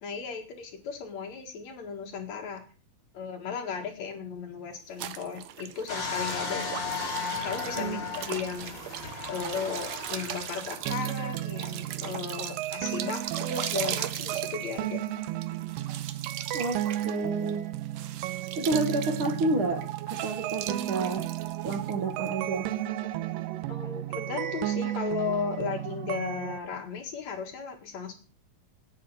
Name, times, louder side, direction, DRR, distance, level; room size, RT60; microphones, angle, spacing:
voice 1, 0.0-2.6 3.1-6.7 7.4-8.7 9.3-15.0 23.7-28.1, left 6 dB, 60° left, 3 dB, 2.9 m, -35 dB
sound 1, 5.0-22.4, right 11 dB, 70° right, 1.7 m, -39 dB
sound 2, 5.9-10.9 11.5-11.6, left 5 dB, 35° left, 4.0 m, -35 dB
voice 2, 7.8-8.1 16.5-17.7 18.6-21.3 21.6-22.7, right 3 dB, 55° right, 4 dB, 1.7 m, -30 dB
sound 3, 10.9-26.6, right 13 dB, 90° right, 2.4 m, -34 dB
9.5 x 8.2 x 6.5 m, 0.35 s
omnidirectional pair, 3.8 m